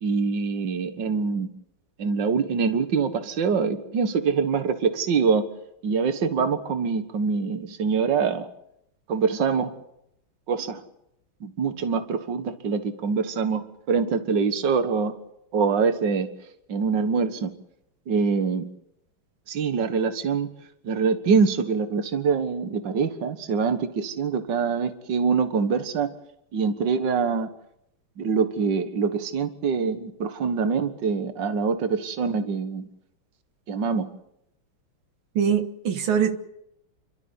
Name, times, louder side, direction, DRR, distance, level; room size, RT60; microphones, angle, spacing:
voice 1, 0.0-1.5 2.0-5.5 5.8-8.5 9.1-9.7 10.5-10.8 11.4-15.1 15.5-16.3 16.7-17.5 18.1-18.7 19.5-20.5 20.8-26.1 26.5-27.5 28.2-32.9 33.7-34.1, right 5 dB, 65° right, 9 dB, 2.1 m, -24 dB
voice 2, 35.4-36.4, right 7 dB, 85° right, 7 dB, 2.2 m, -23 dB
29.0 x 12.5 x 9.7 m, 0.79 s
omnidirectional pair, 2.2 m